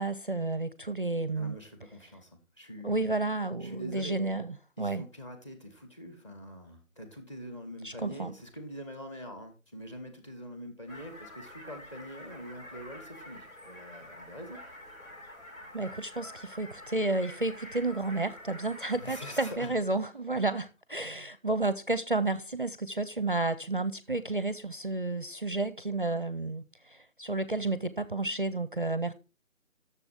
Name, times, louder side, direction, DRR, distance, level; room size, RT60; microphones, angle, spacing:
voice 1, 0.0-1.6 2.8-5.0 7.8-8.4 15.7-29.1, right 2 dB, 40° right, 0.5 m, -31 dB
voice 2, 1.4-3.1 3.6-4.2 4.8-14.7 18.9-19.7, equal, 20° left, 1.7 m, -44 dB
sound 1, 10.9-19.6, left 1 dB, 85° left, 5.7 m, -47 dB
10.5 x 6.9 x 4.7 m
figure-of-eight pair, 170°, 41 cm